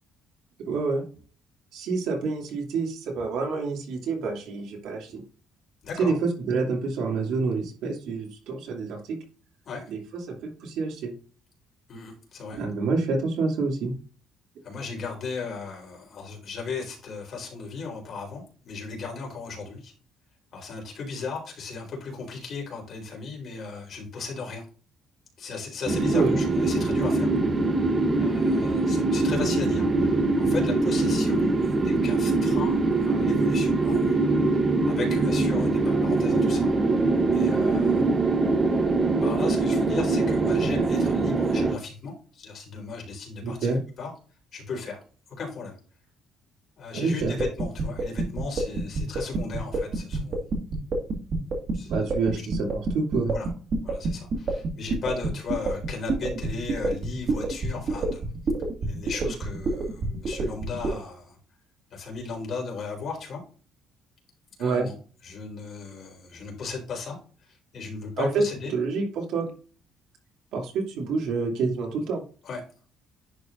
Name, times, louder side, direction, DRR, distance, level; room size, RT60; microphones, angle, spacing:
voice 1, 0.6-1.0 1.7-5.2 6.0-9.2 9.9-11.1 12.5-13.9 26.1-26.4 43.4-43.8 46.9-47.4 51.9-53.3 64.6-64.9 68.2-68.4 68.7-69.5 70.5-72.2, right 4 dB, 75° right, 1 dB, 2.6 m, -27 dB
voice 2, 5.8-6.1 9.7-9.9 11.9-12.6 14.6-19.9 20.5-24.6 25.4-27.3 28.2-34.2 34.8-38.1 39.2-43.7 44.0-44.1 44.5-45.0 45.4-45.8 46.8-50.4 51.7-52.4 53.3-53.5 53.8-58.2 58.8-61.4 61.9-63.4 64.6-64.9 65.2-67.2 67.5-68.7 72.4-72.6, left 4 dB, 45° left, -1 dB, 4.1 m, -36 dB
sound 1, 25.9-41.7, right 3 dB, 25° right, 0.8 m, -23 dB
sound 2, 47.2-60.9, right 3 dB, 40° right, 2.1 m, -27 dB
10.5 x 4.9 x 2.6 m, 0.38 s
cardioid pair, 155°, 0 cm